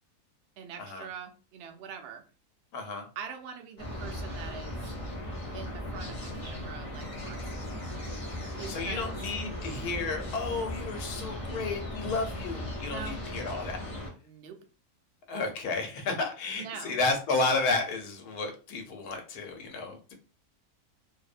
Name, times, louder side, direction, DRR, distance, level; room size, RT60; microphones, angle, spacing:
voice 1, 0.6-2.2 3.2-4.8 5.5-7.9 8.6-9.2 12.9-13.2 14.2-14.6 16.5-17.0, right 7 dB, 80° right, 6 dB, 0.5 m, -43 dB
voice 2, 2.7-3.1 8.5-13.8 15.3-20.1, left 3 dB, 80° left, 4 dB, 1.2 m, -32 dB
sound 1, 3.8-14.1, left 1 dB, 50° left, 0.4 m, -37 dB
2.7 x 2.0 x 2.4 m, 0.35 s
omnidirectional pair, 1.6 m